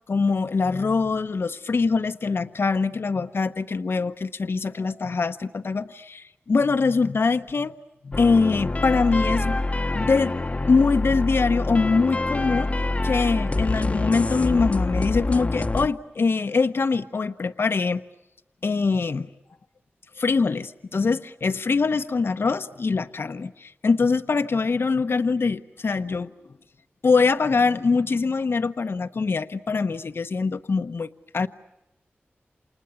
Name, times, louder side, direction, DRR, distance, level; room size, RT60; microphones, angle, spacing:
voice 1, 0.1-7.7 8.0-9.6 9.9-10.4 10.6-12.7 13.0-18.0 18.6-19.3 20.2-26.3 27.0-31.1 31.3-31.5, left 4 dB, 65° left, 10 dB, 0.9 m, -23 dB
sound 1, 8.1-15.9, left 2 dB, 30° left, 1.0 m, -26 dB
29.0 x 27.5 x 7.0 m, 0.91 s
wide cardioid pair, 90°, 4 cm